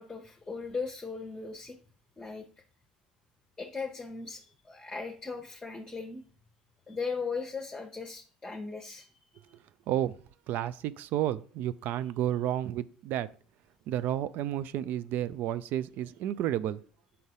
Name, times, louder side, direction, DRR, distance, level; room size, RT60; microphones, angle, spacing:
voice 1, 0.0-1.8 2.2-2.5 3.6-6.2 6.9-9.1, left 4 dB, 15° left, 3 dB, 0.9 m, -38 dB
voice 2, 10.5-13.3 13.9-16.8, right 12 dB, 55° right, 16 dB, 0.3 m, -31 dB
5.6 x 3.9 x 4.9 m, 0.43 s
figure-of-eight pair, 60°, 4 cm